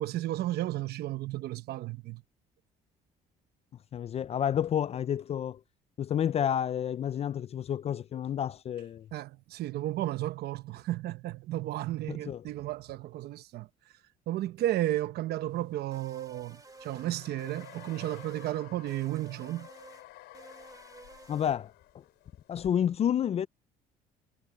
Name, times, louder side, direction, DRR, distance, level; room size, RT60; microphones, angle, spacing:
voice 1, 0.0-2.2 9.1-13.7 14.3-19.7, right 14 dB, 70° right, 1.0 m, -33 dB
voice 2, 3.9-5.6 6.0-9.1 12.1-12.4 21.3-22.0 22.5-23.5, left 9 dB, 40° left, 0.4 m, -30 dB
sound 1, 15.6-22.7, left 17 dB, 85° left, 4.2 m, -53 dB
sound 2, 15.9-17.1 17.4-18.6 18.9-20.1 20.3-21.5, right 3 dB, 20° right, 2.1 m, -52 dB
cardioid pair, 110°, 17 cm